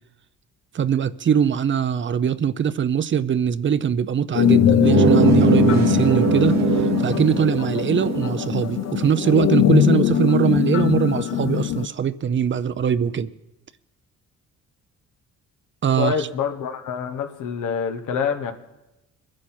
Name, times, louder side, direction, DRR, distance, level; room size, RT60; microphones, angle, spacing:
voice 1, 0.7-6.6 7.0-13.3 15.8-16.3, right 8 dB, 40° right, 0.6 m, -22 dB
sound 1, 4.3-11.9, left 11 dB, 60° left, 0.6 m, -21 dB
sound 2, 4.8-10.1, right 7 dB, 60° right, 1.2 m, -23 dB
voice 2, 15.9-18.5, left 7 dB, 85° left, 1.5 m, -26 dB
22.5 x 9.7 x 4.4 m
cardioid pair, 90°, 30 cm